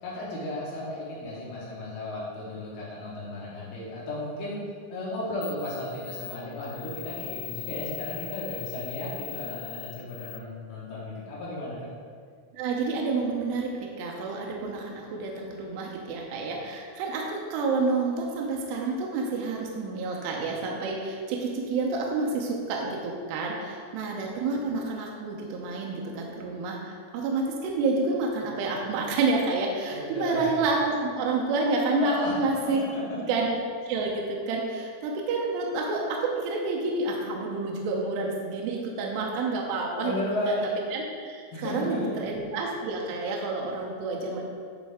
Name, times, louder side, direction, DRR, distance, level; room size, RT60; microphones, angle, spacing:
voice 1, 0.0-4.6 4.9-11.8 29.9-30.5 31.9-32.4 40.0-40.7 41.5-42.1, left 1 dB, 65° left, -6 dB, 2.9 m, -34 dB
sound 1, 5.0-5.1 5.4-10.4, left 20 dB, 85° left, 2.0 m, -40 dB
voice 2, 12.5-32.8 33.3-33.5 33.9-40.1 40.5-40.6 40.9-44.4, right 3 dB, 80° right, -1 dB, 2.6 m, -29 dB
10.5 x 4.5 x 3.6 m, 2.1 s
omnidirectional pair, 5.3 m